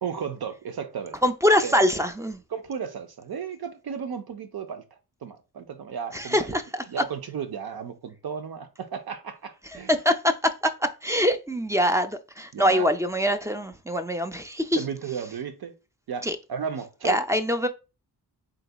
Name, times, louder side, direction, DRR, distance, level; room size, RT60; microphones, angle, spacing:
voice 1, 0.0-1.2 1.6-2.0 2.5-4.8 5.2-6.6 6.9-9.9 12.5-12.9 14.7-15.7 16.1-17.2, right 7 dB, 70° right, 0.8 m, -34 dB
voice 2, 1.2-2.4 6.1-6.8 9.9-10.7 11.0-14.8 16.2-16.4 17.0-17.7, equal, 10° right, 0.3 m, -24 dB
4.0 x 3.9 x 2.2 m
wide cardioid pair, 135°, 39 cm